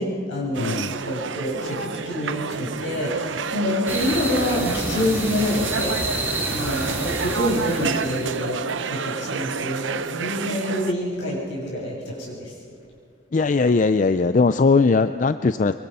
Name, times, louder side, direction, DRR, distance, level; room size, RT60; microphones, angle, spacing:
voice 1, 0.0-6.0 6.5-8.6 8.9-12.5, left 1 dB, 70° left, -4 dB, 7.5 m, -26 dB
sound 1, 0.5-10.9, right 5 dB, 75° right, 0.8 m, -30 dB
voice 2, 0.6-1.0 13.3-15.7, left 4 dB, 40° left, 11 dB, 0.4 m, -19 dB
sound 2, 3.9-8.5, right 1 dB, 10° right, 3.6 m, -29 dB
24.0 x 24.0 x 5.6 m, 2.6 s
head